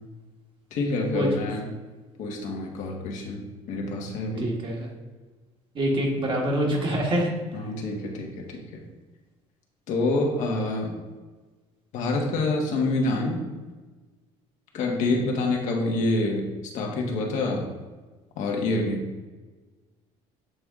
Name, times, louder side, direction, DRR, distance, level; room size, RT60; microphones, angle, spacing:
voice 1, 0.7-1.7 2.2-3.4 3.7-4.5 6.1-6.2 7.5-8.8 9.9-10.9 11.9-13.4 14.7-17.7 18.4-19.0, left 2 dB, 70° left, 1 dB, 1.3 m, -27 dB
voice 2, 4.4-4.9 5.7-7.3, right 1 dB, 40° right, 0 dB, 1.5 m, -25 dB
7.9 x 3.5 x 3.7 m, 1.3 s
cardioid pair, 115°, 13 cm